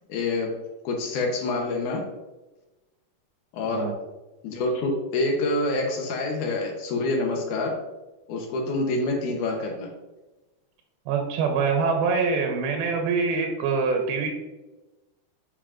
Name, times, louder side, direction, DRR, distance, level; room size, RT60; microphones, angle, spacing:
voice 1, 0.1-0.5 0.8-2.0 3.5-3.8 4.4-7.7 8.3-9.9, left 2 dB, 80° left, 1 dB, 1.8 m, -26 dB
voice 2, 11.1-14.3, right 4 dB, 80° right, 3 dB, 2.4 m, -24 dB
8.6 x 5.4 x 2.5 m, 1.1 s
omnidirectional pair, 4.8 m